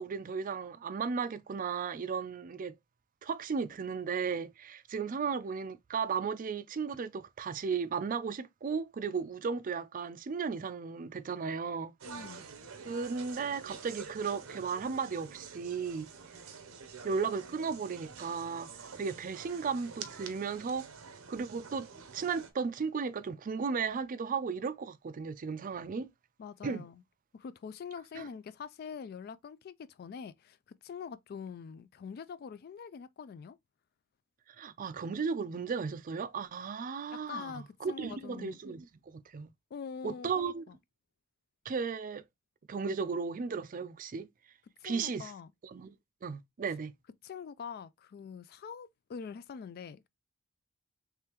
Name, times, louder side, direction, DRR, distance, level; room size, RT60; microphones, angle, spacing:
voice 1, 0.0-2.7 3.2-11.9 12.8-16.1 17.0-20.9 21.3-26.1 26.6-26.8 28.2-28.3 34.6-39.5 40.0-40.6 41.6-42.2 42.7-44.3 44.8-45.3 45.6-45.9 46.2-46.9, right 5 dB, 40° right, 0.4 m, -35 dB
voice 2, 12.0-12.4 26.4-27.0 27.3-30.6 30.8-33.6 37.1-38.6 39.7-40.8 44.8-45.5 47.2-50.1, left 6 dB, 45° left, 0.3 m, -44 dB
sound 1, 12.0-22.5, right 5 dB, 75° right, 0.7 m, -48 dB
3.5 x 3.3 x 2.9 m
head